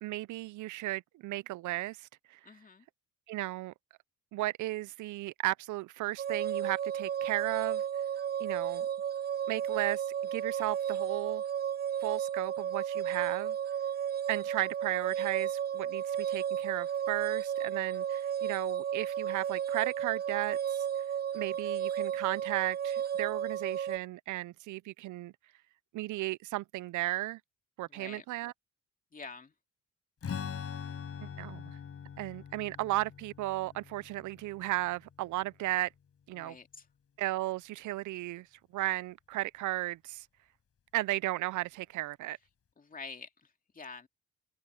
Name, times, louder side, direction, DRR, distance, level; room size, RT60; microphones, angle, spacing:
voice 1, 0.0-2.4 3.3-3.7 4.3-7.8 8.4-8.9 9.5-10.0 10.3-11.4 12.0-13.6 14.3-20.8 21.3-25.3 25.9-27.4 27.8-28.5 31.2-31.8 32.2-35.9 36.3-36.6 37.2-38.5 38.7-40.3 40.9-42.4, right 17 dB, 75° right, 0.6 m, -35 dB
voice 2, 2.4-2.8 27.9-28.2 29.1-29.5 36.3-36.9 42.8-44.1, left 4 dB, 30° left, 2.5 m, -47 dB
sound 1, 6.2-24.0, right 9 dB, 35° right, 0.6 m, -33 dB
Strum, 30.2-35.8, left 7 dB, 50° left, 5.7 m, -43 dB
open air
cardioid pair, 90°, 30 cm